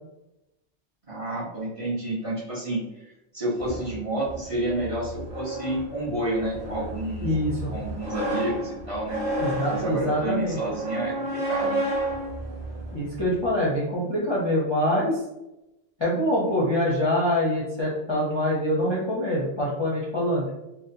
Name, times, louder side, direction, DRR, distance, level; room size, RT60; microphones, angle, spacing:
voice 1, 1.1-2.8 3.3-7.4 7.7-9.2 9.7-11.8, right 1 dB, 35° right, -7 dB, 0.7 m, -29 dB
sound 1, 3.6-13.5, right 1 dB, 85° right, 1.3 m, -32 dB
voice 2, 7.2-7.7 9.4-10.6 12.9-15.2 16.0-20.5, left 1 dB, 35° left, -7 dB, 0.5 m, -25 dB
2.8 x 2.1 x 2.6 m, 0.90 s
omnidirectional pair, 1.1 m